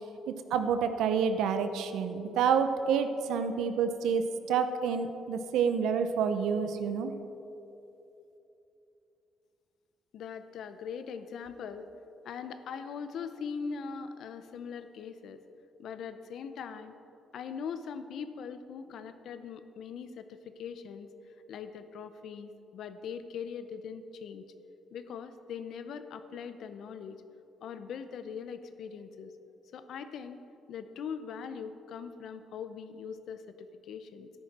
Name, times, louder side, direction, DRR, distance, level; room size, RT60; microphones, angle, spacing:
voice 1, 0.3-7.1, right 6 dB, 85° right, 9 dB, 0.7 m, -28 dB
voice 2, 10.1-11.9 12.2-15.4 15.8-16.9 17.3-21.1 21.5-24.4 24.9-27.2 27.6-29.3 29.7-30.4 30.7-34.3, left 6 dB, 70° left, 10 dB, 0.7 m, -41 dB
13.5 x 10.5 x 4.3 m, 3.0 s
cardioid pair, 90°, 0 cm